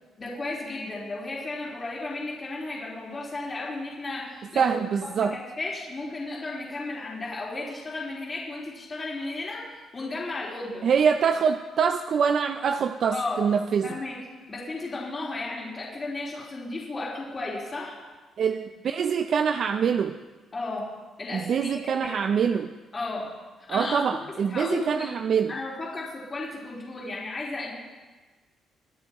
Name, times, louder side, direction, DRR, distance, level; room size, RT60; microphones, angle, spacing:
voice 1, 0.2-4.8 5.2-10.9 13.1-13.4 13.8-14.2 14.5-18.0 20.5-20.9 21.2-22.3 22.9-23.3 23.7-24.0 24.5-25.1 25.5-27.7, left 2 dB, 35° left, -5 dB, 3.7 m, -34 dB
voice 2, 4.6-5.4 10.8-14.0 18.4-20.2 21.3-22.7 23.7-25.5, right 6 dB, 60° right, 7 dB, 0.5 m, -24 dB
23.0 x 9.5 x 3.0 m, 1.3 s
cardioid pair, 90°, 0 cm